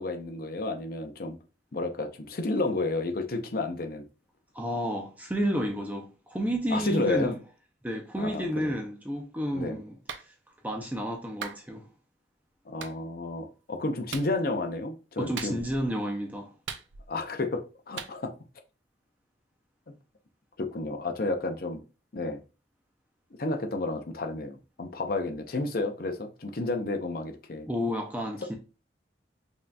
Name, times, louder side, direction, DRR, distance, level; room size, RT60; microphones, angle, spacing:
voice 1, 0.0-1.4 1.7-4.0 6.7-7.3 8.2-8.7 9.5-9.8 12.7-15.6 17.1-18.3 19.9-20.0 20.6-21.8 22.1-22.4 23.4-27.7, left 2 dB, 55° left, 0.6 m, -31 dB
voice 2, 4.5-7.4 7.8-10.0 10.2-10.3 10.6-11.9 15.2-16.5 27.7-28.6, equal, 10° right, 0.5 m, -31 dB
Clapping, 10.1-10.3 11.4-11.6 12.8-13.0 14.1-14.3 15.4-15.8 16.7-17.2 18.0-18.1, right 6 dB, 85° right, 0.5 m, -38 dB
5.4 x 2.7 x 2.2 m
head